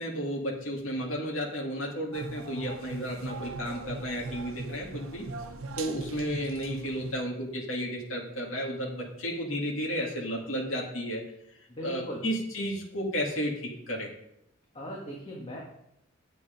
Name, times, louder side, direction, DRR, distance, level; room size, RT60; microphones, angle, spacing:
voice 1, 0.0-5.2 5.8-11.2 11.8-14.1, equal, 70° left, -2 dB, 2.3 m, -33 dB
sound 1, 2.1-7.2, right 3 dB, 80° right, 0.9 m, -40 dB
voice 2, 11.7-12.2 14.7-15.6, equal, 30° left, -2 dB, 1.7 m, -38 dB
9.8 x 8.3 x 5.2 m, 0.80 s
head